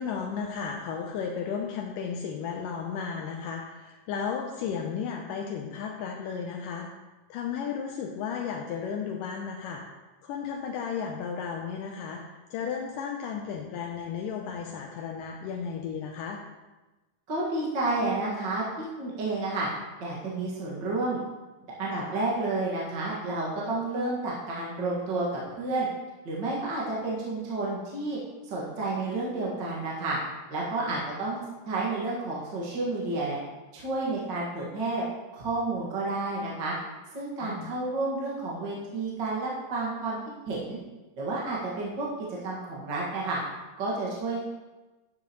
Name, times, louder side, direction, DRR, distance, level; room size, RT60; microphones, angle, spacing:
voice 1, 0.0-6.9 7.3-9.8 10.2-12.2 12.5-16.4 21.9-22.1 30.9-31.1 37.4-37.7, left 6 dB, 80° left, 1 dB, 2.3 m, -34 dB
voice 2, 17.3-19.7 20.0-21.2 21.8-25.9 26.2-28.2 28.4-30.2 30.5-31.4 31.7-33.4 33.7-35.0 35.3-36.7 37.1-40.2 40.5-40.8 41.2-43.4 43.8-44.4, right 2 dB, 40° right, -5 dB, 1.9 m, -30 dB
12.5 x 7.8 x 3.0 m, 1.1 s
omnidirectional pair, 3.9 m